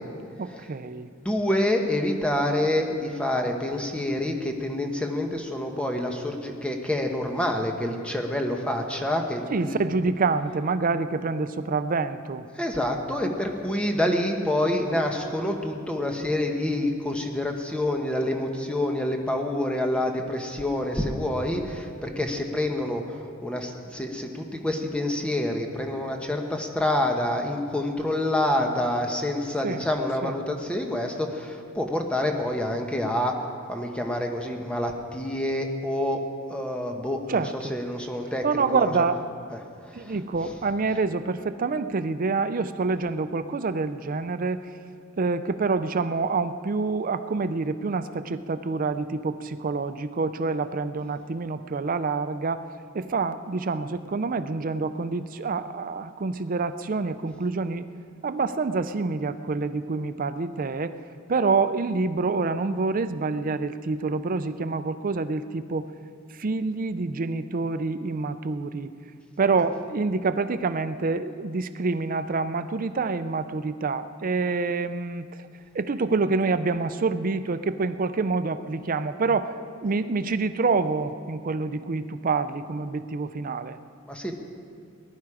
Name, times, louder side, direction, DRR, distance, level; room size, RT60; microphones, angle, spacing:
voice 1, 0.4-1.1 9.5-12.5 29.6-29.8 30.2-30.3 37.3-37.7 38.4-39.2 39.9-44.7 45.2-52.7 52.9-57.9 58.2-61.0 61.3-65.9 66.3-68.9 69.4-75.5 75.7-79.5 79.8-83.8, right 4 dB, 45° right, 12 dB, 0.5 m, -27 dB
voice 2, 1.2-9.8 12.5-33.3 33.7-37.4 37.7-38.9 39.5-39.6 39.9-40.1 84.1-84.4, left 1 dB, 5° left, 2 dB, 1.1 m, -27 dB
20.0 x 11.5 x 4.9 m, 2.3 s
head